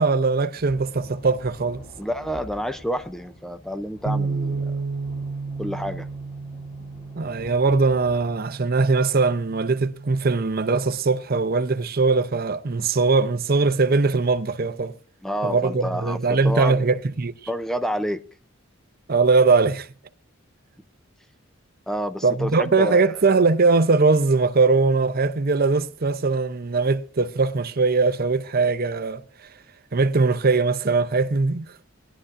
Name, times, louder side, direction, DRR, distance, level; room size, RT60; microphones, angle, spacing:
voice 1, 0.0-1.8 7.2-14.9 15.4-17.3 19.1-19.9 22.2-29.2 29.9-31.7, right 4 dB, 45° right, 0.7 m, -21 dB
sound 1, 0.5-8.4, left 1 dB, 40° left, 2.8 m, -47 dB
voice 2, 2.0-4.6 5.6-6.1 15.2-16.8 17.5-18.2 21.9-23.2, equal, ahead, 0.6 m, -29 dB
Bass guitar, 4.1-10.3, right 4 dB, 90° right, 0.5 m, -32 dB
20.0 x 11.5 x 2.6 m
head